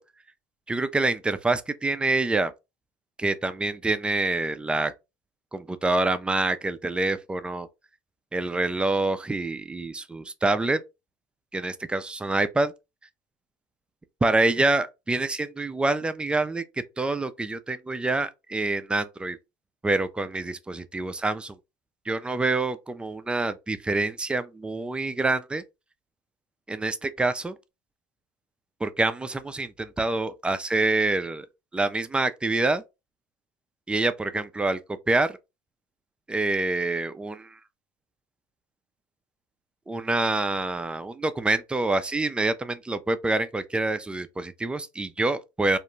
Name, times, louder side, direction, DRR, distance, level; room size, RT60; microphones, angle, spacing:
voice 1, 0.7-2.5 3.2-4.9 5.5-7.7 8.3-10.8 11.5-12.7 14.2-16.6 17.0-19.4 19.8-21.6 22.1-25.6 26.7-27.6 28.8-31.5 31.7-32.8 33.9-34.8 35.1-35.4 36.3-37.6 39.9-45.8, right 2 dB, 10° right, 0.3 m, -26 dB
2.5 x 2.1 x 3.0 m
hypercardioid pair, 90°, 10 cm